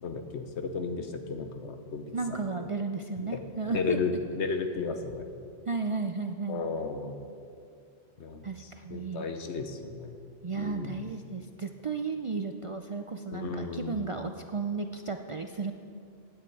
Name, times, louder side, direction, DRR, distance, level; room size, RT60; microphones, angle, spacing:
voice 1, 0.0-2.7 3.3-3.4 3.7-5.3 6.5-7.2 8.2-10.2 10.5-11.1 13.3-14.0, left 4 dB, 85° left, 7 dB, 1.3 m, -34 dB
voice 2, 2.1-4.0 5.7-6.6 8.4-9.3 10.4-15.7, right 4 dB, 45° right, 5 dB, 0.4 m, -34 dB
16.0 x 9.6 x 4.6 m, 2.3 s
omnidirectional pair, 1.1 m